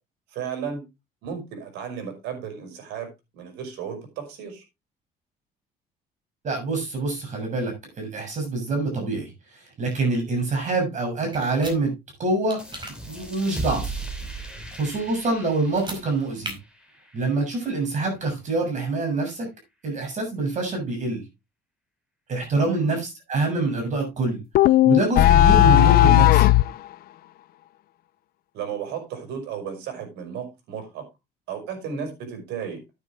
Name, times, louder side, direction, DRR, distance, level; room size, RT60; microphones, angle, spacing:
voice 1, 0.3-0.8 1.2-4.6 22.7-23.0 28.5-31.0 31.5-32.8, right 7 dB, 85° right, 5 dB, 5.5 m, -34 dB
voice 2, 6.4-11.9 12.2-12.6 13.1-13.9 14.4-14.5 14.8-16.6 17.1-19.5 19.8-21.2 22.3-24.4 24.8-26.5, right 3 dB, 45° right, 2 dB, 6.7 m, -25 dB
sound 1, 11.3-11.8 12.5-12.9 15.6-16.0 16.4-16.5, right 2 dB, 25° right, 5.0 m, -36 dB
sound 2, 12.6-17.8, right 2 dB, 5° right, 3.9 m, -37 dB
sound 3, 24.5-26.7, left 14 dB, 65° left, 0.6 m, -15 dB
9.9 x 9.6 x 3.6 m, 0.24 s
cardioid pair, 110°, 17 cm